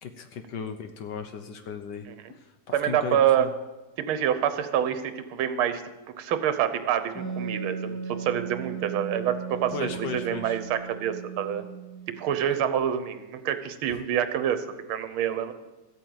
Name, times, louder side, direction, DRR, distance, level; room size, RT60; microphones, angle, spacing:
voice 1, 0.0-3.5 4.9-5.0 9.7-10.6, left 6 dB, 65° left, 9 dB, 1.3 m, -37 dB
voice 2, 2.7-3.5 4.0-5.8 6.2-11.6 12.2-15.5, right 9 dB, 80° right, 11 dB, 1.8 m, -27 dB
Wind instrument woodwind instrument, 7.1-12.5, right 6 dB, 10° left, 3.3 m, -37 dB
14.0 x 8.5 x 7.9 m, 1.1 s
omnidirectional pair, 2.3 m